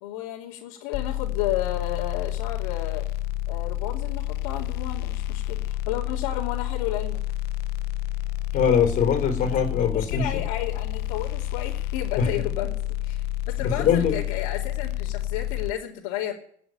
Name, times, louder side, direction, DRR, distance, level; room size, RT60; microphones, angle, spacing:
voice 1, 0.0-3.1 3.5-7.2 9.9-12.8 13.0-16.3, left 12 dB, 75° left, -3 dB, 3.0 m, -32 dB
sound 1, 0.9-15.7, left 14 dB, 60° left, 0.9 m, -29 dB
voice 2, 8.5-10.3 12.2-12.3 13.8-14.2, left 7 dB, 45° left, 5 dB, 4.0 m, -22 dB
18.0 x 7.5 x 9.3 m, 0.62 s
supercardioid pair, 110°, 18 cm